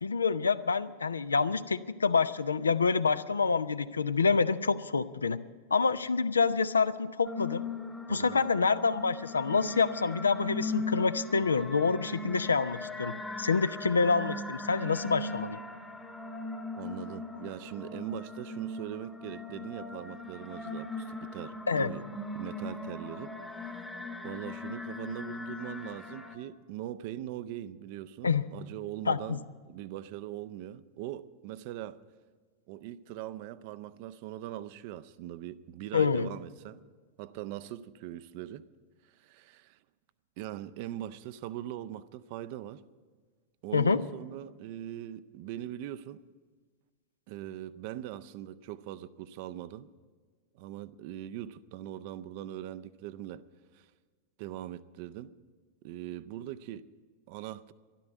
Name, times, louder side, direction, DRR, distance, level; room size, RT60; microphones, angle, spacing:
voice 1, 0.0-5.4 5.7-7.6 8.1-15.6 21.7-21.9 28.2-28.4 29.1-29.4 35.9-36.3 43.7-44.0, left 5 dB, 75° left, 0.5 m, -27 dB
sound 1, 7.2-26.4, left 2 dB, 5° left, 1.0 m, -39 dB
voice 2, 8.1-8.5 16.8-22.0 22.3-23.3 23.6-23.9 24.2-32.0 32.7-36.8 37.2-38.6 39.0-39.8 40.4-42.8 43.6-46.2 47.3-49.9 50.5-53.4 53.7-53.9 54.4-55.3 55.8-56.9 57.3-57.7, right 12 dB, 45° right, 0.5 m, -41 dB
13.0 x 11.5 x 8.3 m
figure-of-eight pair, 90°, 0 cm